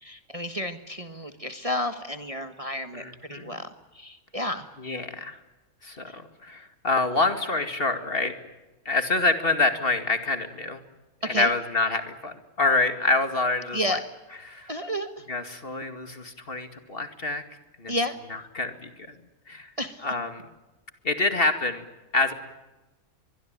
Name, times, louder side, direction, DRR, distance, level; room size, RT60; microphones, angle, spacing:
voice 1, 0.0-3.7 3.9-4.7 6.1-6.2 11.2-11.5 13.7-14.0 14.7-15.3 17.9-18.2 19.8-20.1, equal, 25° right, 8 dB, 1.4 m, -31 dB
voice 2, 2.9-3.6 4.8-5.4 5.8-8.3 8.9-10.8 11.2-14.0 14.5-14.7 15.3-17.4 17.8-17.9 18.3-19.1 19.5-19.7 20.0-20.4 21.0-21.8 22.1-22.3, left 3 dB, 40° left, 8 dB, 2.5 m, -26 dB
24.5 x 22.0 x 9.0 m, 1.1 s
omnidirectional pair, 1.5 m